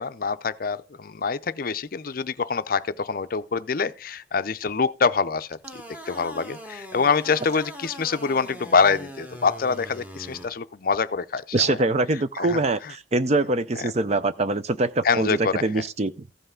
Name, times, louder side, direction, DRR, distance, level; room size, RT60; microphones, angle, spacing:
voice 1, 0.0-5.6 6.1-11.8 12.4-12.6 13.8-13.9 15.0-15.7, left 5 dB, 45° left, 0.5 m, -25 dB
sound 1, 5.6-10.5, equal, 10° right, 1.3 m, -41 dB
voice 2, 11.5-16.3, right 2 dB, 35° right, 0.4 m, -24 dB
15.0 x 5.6 x 3.7 m
head